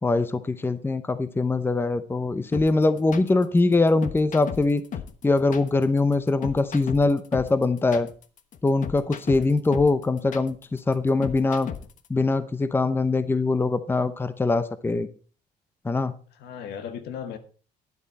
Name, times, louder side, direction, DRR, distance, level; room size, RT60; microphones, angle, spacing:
voice 1, 0.0-4.8 5.2-8.1 8.6-11.7 12.1-15.1 15.8-16.1, left 3 dB, 15° left, 13 dB, 0.7 m, -22 dB
sound 1, 2.5-12.1, left 8 dB, 50° left, 1.2 m, -36 dB
voice 2, 16.3-17.4, left 8 dB, 80° left, 9 dB, 1.6 m, -37 dB
12.0 x 9.9 x 4.2 m, 0.38 s
cardioid pair, 110°, 17 cm